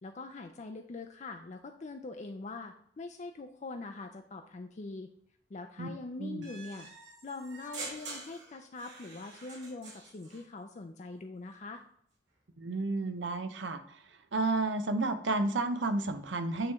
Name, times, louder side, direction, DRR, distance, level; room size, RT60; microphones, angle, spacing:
voice 1, 0.0-5.1 5.5-6.9 7.2-11.8, left 3 dB, 40° left, 5 dB, 0.4 m, -43 dB
sound 1, 6.4-10.4, right 3 dB, 70° right, 2.0 m, -46 dB
voice 2, 12.6-14.0 14.3-16.7, right 2 dB, 90° right, 9 dB, 0.7 m, -31 dB
8.9 x 3.2 x 3.5 m, 0.66 s
head